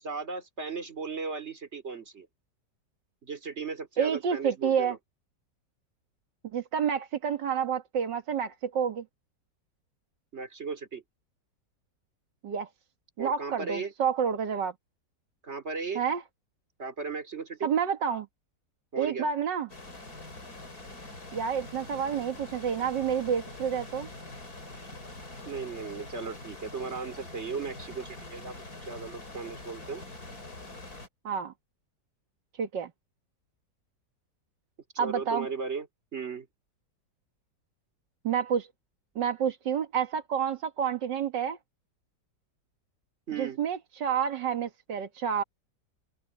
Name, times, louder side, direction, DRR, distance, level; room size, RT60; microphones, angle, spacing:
voice 1, 0.0-2.3 3.2-5.0 10.3-11.0 13.2-13.9 15.4-16.0 16.8-17.7 18.9-19.3 24.8-24.9 25.4-30.0 34.9-35.9 36.1-36.5 43.3-43.6, right 4 dB, 40° right, 3.3 m, -36 dB
voice 2, 4.0-5.0 6.5-9.0 12.4-12.7 13.2-14.7 16.0-16.2 17.6-18.3 19.0-19.7 21.3-24.1 31.2-31.5 32.6-32.9 35.0-35.5 38.2-38.7 39.2-41.6 43.4-45.4, right 7 dB, 85° right, 2.3 m, -29 dB
sound 1, 19.7-31.1, left 2 dB, 55° left, 5.4 m, -44 dB
omnidirectional pair, 1.9 m